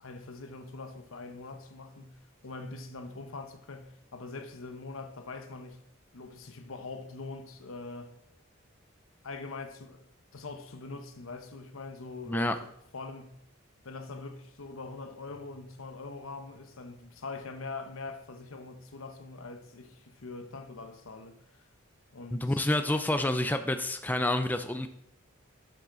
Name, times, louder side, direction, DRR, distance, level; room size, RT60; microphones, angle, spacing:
voice 1, 0.0-5.8 6.1-8.2 9.2-13.4 13.8-21.7 22.1-22.7, left 3 dB, 80° left, 0.9 m, -43 dB
voice 2, 22.3-24.9, left 1 dB, 10° left, 0.4 m, -28 dB
11.0 x 6.9 x 3.8 m
head